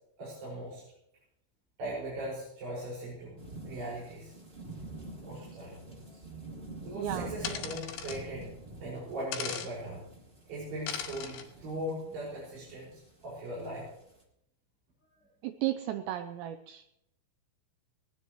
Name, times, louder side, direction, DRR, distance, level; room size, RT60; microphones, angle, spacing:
voice 1, 0.2-0.8 1.8-4.3 5.2-6.2 6.8-8.5 8.8-10.0 10.5-13.9, right 1 dB, 55° right, -7 dB, 7.5 m, -39 dB
sound 1, 3.4-14.2, right 2 dB, 20° right, 2.0 m, -47 dB
voice 2, 6.9-7.3 15.4-16.8, right 13 dB, 80° right, 8 dB, 2.6 m, -34 dB
sound 2, 7.4-8.2 9.3-9.7 10.9-11.4, left 9 dB, 75° left, 4.1 m, -37 dB
21.0 x 19.0 x 3.1 m, 0.77 s
omnidirectional pair, 5.7 m